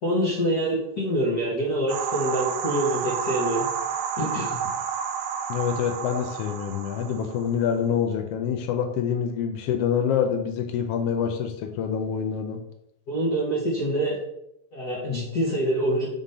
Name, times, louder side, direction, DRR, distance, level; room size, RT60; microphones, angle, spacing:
voice 1, 0.0-3.7 4.2-4.6 13.1-14.2 14.7-16.1, right 1 dB, 55° left, -5 dB, 1.1 m, -25 dB
sound 1, 1.9-7.6, right 7 dB, 80° right, 1.8 m, -30 dB
voice 2, 5.5-12.6, left 8 dB, 85° left, 4 dB, 1.3 m, -26 dB
4.9 x 3.8 x 5.4 m, 0.80 s
omnidirectional pair, 3.3 m